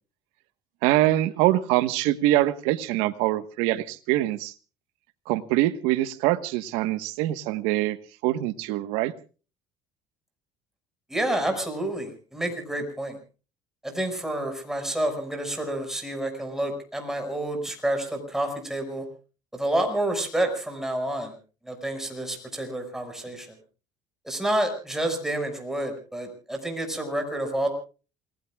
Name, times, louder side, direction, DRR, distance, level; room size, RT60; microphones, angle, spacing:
voice 1, 0.8-4.5 5.3-8.0 8.2-9.1, right 15 dB, 85° right, 12 dB, 1.3 m, -24 dB
voice 2, 11.1-13.2 13.8-19.0 19.5-21.3 21.6-23.6 24.2-27.7, right 1 dB, 5° right, 5 dB, 5.9 m, -29 dB
28.5 x 19.5 x 2.4 m, 0.36 s
cardioid pair, 115°, 10 cm